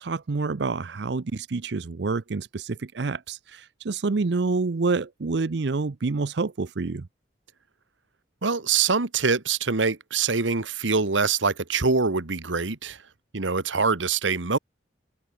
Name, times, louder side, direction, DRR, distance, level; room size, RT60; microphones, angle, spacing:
voice 1, 0.0-7.1, right 4 dB, 65° right, 0.6 m, -28 dB
voice 2, 8.4-13.0 13.3-14.6, right 4 dB, 90° right, 1.5 m, -24 dB
open air
head